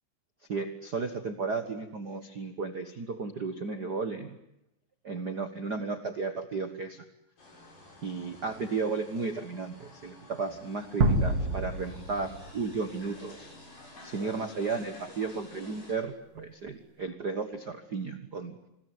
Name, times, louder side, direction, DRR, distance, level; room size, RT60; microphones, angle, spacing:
voice 1, 0.5-4.4 5.0-7.0 8.0-13.5 14.0-18.5, right 4 dB, 65° right, 8 dB, 0.9 m, -34 dB
sound 1, 7.4-15.9, left 2 dB, 75° left, 9.9 m, -51 dB
sound 2, 11.0-13.4, right 2 dB, 45° right, 3.2 m, -28 dB
27.5 x 21.5 x 9.5 m, 0.87 s
omnidirectional pair, 4.1 m